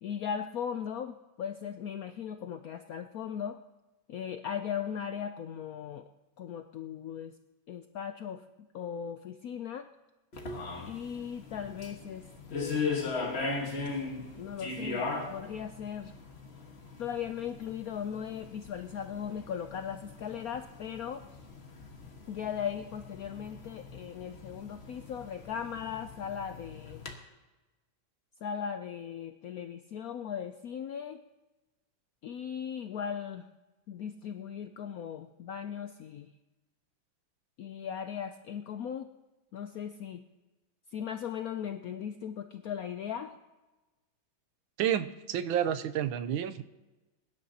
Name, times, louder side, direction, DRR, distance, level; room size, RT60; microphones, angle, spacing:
voice 1, 0.0-3.6 4.1-6.1 6.4-7.4 7.7-8.4 8.7-9.9 10.9-13.2 14.3-16.1 17.0-21.2 22.3-27.0 28.4-31.2 32.2-33.5 33.9-36.3 37.6-39.1 39.5-40.2 40.9-43.4, left 8 dB, 85° left, 8 dB, 0.7 m, -38 dB
sound 1, 10.3-27.1, left 4 dB, 35° left, 1.5 m, -39 dB
voice 2, 44.8-46.6, right 10 dB, 85° right, 11 dB, 1.5 m, -30 dB
22.5 x 11.5 x 2.8 m, 1.1 s
omnidirectional pair, 2.2 m